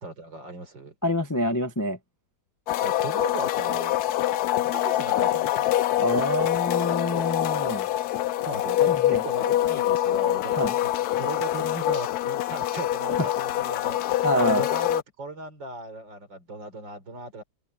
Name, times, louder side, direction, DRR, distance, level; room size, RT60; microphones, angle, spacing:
voice 1, 0.0-0.9 2.8-4.0 4.6-5.7 8.4-17.4, right 2 dB, 60° right, 4.9 m, -37 dB
voice 2, 1.0-2.0 6.0-7.9 8.9-9.2 10.6-10.7 14.2-14.6, equal, 15° left, 0.8 m, -26 dB
sound 1, 2.7-15.0, left 13 dB, 75° left, 0.8 m, -25 dB
open air
omnidirectional pair, 2.2 m